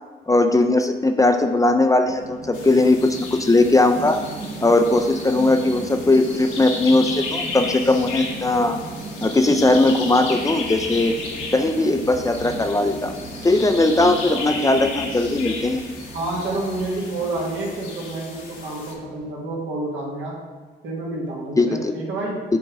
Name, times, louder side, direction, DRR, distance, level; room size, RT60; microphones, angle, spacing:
voice 1, 0.3-4.2 4.6-8.8 9.2-11.2 11.5-13.1 13.4-15.8 21.6-22.0, left 2 dB, 15° left, 7 dB, 0.5 m, -19 dB
sound 1, 2.1-19.3, right 2 dB, 40° right, 0.9 m, -37 dB
sound 2, 2.5-18.9, left 4 dB, 90° left, 1.4 m, -34 dB
voice 2, 16.1-20.4 20.8-22.4, right 2 dB, 75° right, -3 dB, 2.0 m, -29 dB
7.2 x 3.9 x 4.7 m, 1.5 s
cardioid pair, 90°, 20 cm